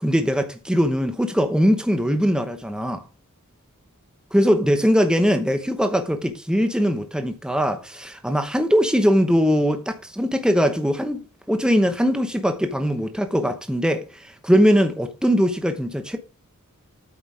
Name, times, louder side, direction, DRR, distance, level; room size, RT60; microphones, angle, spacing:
voice 1, 0.0-3.0 4.3-16.2, equal, 5° right, 0.9 m, -21 dB
8.5 x 7.0 x 4.9 m
head